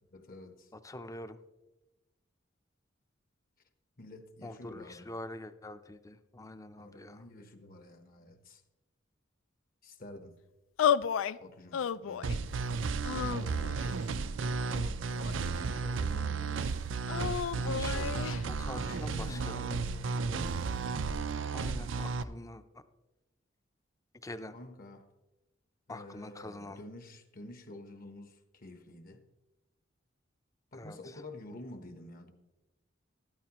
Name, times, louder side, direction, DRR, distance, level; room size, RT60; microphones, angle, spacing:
voice 1, 0.1-0.7 4.0-5.1 6.8-8.6 9.8-10.4 11.4-12.5 13.2-14.1 15.7-16.7 18.7-20.5 24.5-25.1 25.9-29.2 30.7-32.3, left 1 dB, 50° left, 1.0 m, -49 dB
voice 2, 0.7-1.4 4.4-7.2 17.6-19.6 21.4-22.8 24.1-24.6 25.9-26.8 30.7-31.2, left 2 dB, 15° left, 0.5 m, -45 dB
sound 1, 10.8-11.4 11.7-12.4 13.0-13.9 14.7-15.7 17.1-18.4, left 8 dB, 85° left, 0.3 m, -32 dB
sound 2, 12.2-22.2, right 4 dB, 75° right, 0.5 m, -33 dB
13.5 x 12.0 x 3.0 m
head